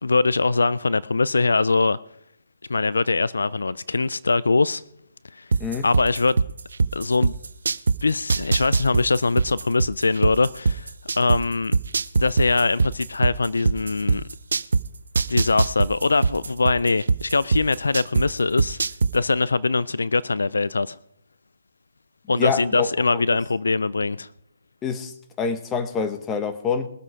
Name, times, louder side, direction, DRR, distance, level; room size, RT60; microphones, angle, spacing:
voice 1, 0.0-2.0 2.7-4.8 5.3-5.5 5.8-6.4 6.9-7.3 8.0-10.9 11.2-11.7 12.1-14.2 15.3-18.8 19.1-21.0 22.3-24.3, left 3 dB, 85° left, 0.4 m, -22 dB
sound 1, 5.5-8.0 8.3-11.4 11.7-14.8 15.1-18.2 18.6-19.1, right 4 dB, 75° right, 0.6 m, -20 dB
voice 2, 22.3-22.9 23.1-23.2 24.8-26.9, left 6 dB, 15° left, 1.3 m, -26 dB
21.0 x 7.7 x 4.9 m
hypercardioid pair, 140°, 0 cm